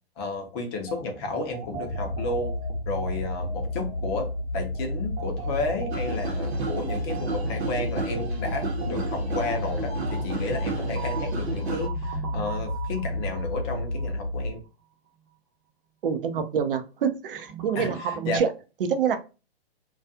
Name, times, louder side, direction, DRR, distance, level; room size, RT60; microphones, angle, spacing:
voice 1, 0.2-2.5 2.9-14.6 17.7-18.4, left 3 dB, 25° left, 4 dB, 0.5 m, -32 dB
sound 1, 0.9-14.6 17.3-18.4, right 6 dB, 20° right, 0.7 m, -41 dB
sound 2, 1.8-14.5, left 1 dB, 60° left, 0.8 m, -31 dB
sound 3, 5.9-11.9, right 4 dB, 90° right, 0.8 m, -33 dB
voice 2, 16.0-18.5 18.8-19.2, right 7 dB, 60° right, 8 dB, 0.6 m, -26 dB
2.3 x 2.3 x 2.7 m, 0.31 s
hypercardioid pair, 130°, 31 cm